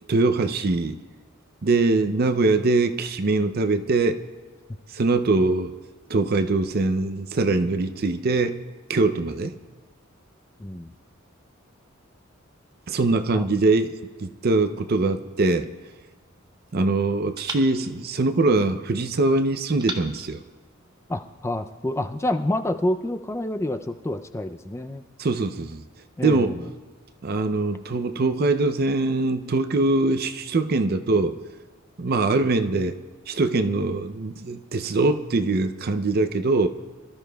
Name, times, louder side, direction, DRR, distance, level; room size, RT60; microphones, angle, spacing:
voice 1, 0.1-1.0 1.6-4.2 4.9-5.7 6.1-8.6 8.9-9.5 12.9-13.9 14.2-15.7 16.7-20.4 25.2-25.8 26.2-26.5 27.2-31.4 32.0-33.0 33.3-36.7, right 3 dB, 45° right, 9 dB, 0.5 m, -22 dB
sound 1, 15.6-16.8 17.4-19.0 19.8-21.4, right 2 dB, 20° right, 0.8 m, -40 dB
voice 2, 21.1-25.0 26.2-26.6, left 1 dB, 15° left, 7 dB, 0.4 m, -28 dB
25.0 x 13.0 x 2.3 m, 1.3 s
head